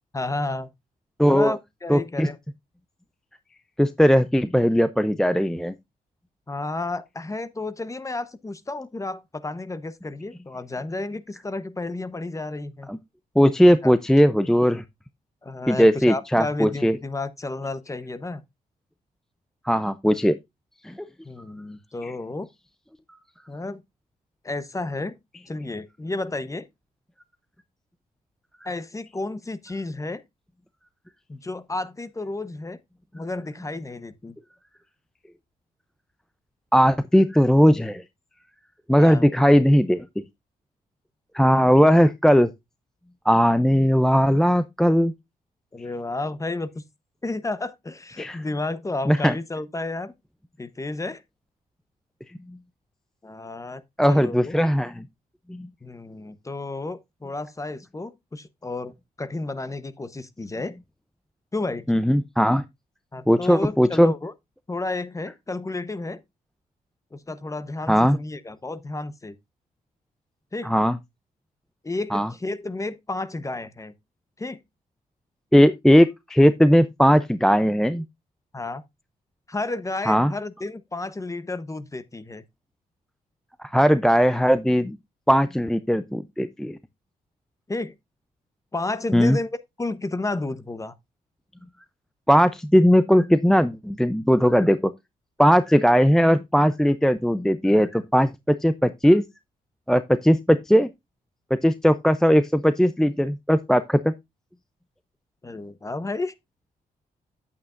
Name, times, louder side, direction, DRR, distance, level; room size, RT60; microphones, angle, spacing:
voice 1, 0.1-0.7 1.3-2.4 6.5-12.9 13.8-13.9 15.4-18.4 21.2-22.5 23.5-23.8 24.4-25.2 25.5-26.6 28.6-30.2 31.3-32.8 33.1-34.4 39.0-39.3 45.7-46.8 47.2-50.1 50.6-51.2 53.2-53.8 54.1-54.6 55.8-60.8 61.5-61.9 63.1-64.3 64.7-66.2 67.1-69.4 70.5-70.7 71.8-73.9 74.4-74.6 78.5-78.8 79.5-82.4 87.7-87.9 88.7-90.9 105.4-106.3, left 2 dB, 20° left, 0.9 m, -31 dB
voice 2, 1.2-1.5 1.9-2.3 3.8-5.7 12.9-13.0 13.4-14.8 15.7-17.0 19.7-20.3 20.8-20.9 22.0-22.1 36.7-38.0 38.9-40.0 41.3-42.5 43.3-45.1 48.2-48.4 49.1-49.4 54.0-55.0 55.5-55.7 61.9-62.6 63.3-64.1 67.9-68.2 70.6-71.0 72.1-72.3 75.5-78.0 80.1-80.3 83.7-85.0 85.3-86.8 89.1-89.4 92.3-94.9 95.4-99.2 99.9-100.9 101.6-104.1, equal, 5° left, 0.5 m, -18 dB
9.3 x 8.4 x 2.5 m
cardioid pair, 80°, 16 cm